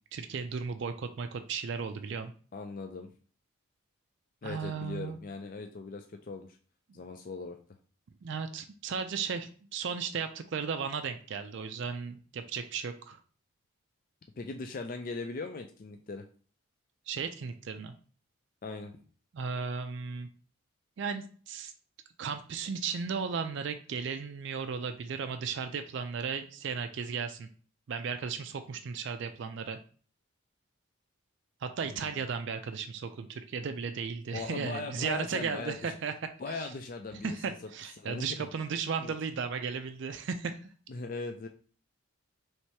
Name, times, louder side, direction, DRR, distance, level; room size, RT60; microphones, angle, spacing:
voice 1, 0.1-2.3 4.4-5.2 8.2-13.2 17.1-17.9 19.3-20.3 21.0-21.7 22.2-27.5 27.9-29.8 31.6-36.1 36.5-36.6 37.2-40.7, right 5 dB, 55° right, 8 dB, 0.4 m, -35 dB
voice 2, 2.5-3.1 4.4-6.5 6.9-7.6 14.4-16.2 18.6-18.9 31.8-32.0 34.3-35.9 36.4-37.5 38.0-38.5 39.0-39.1 40.9-41.5, left 3 dB, 40° left, 5 dB, 0.3 m, -39 dB
3.2 x 2.8 x 4.6 m, 0.42 s
head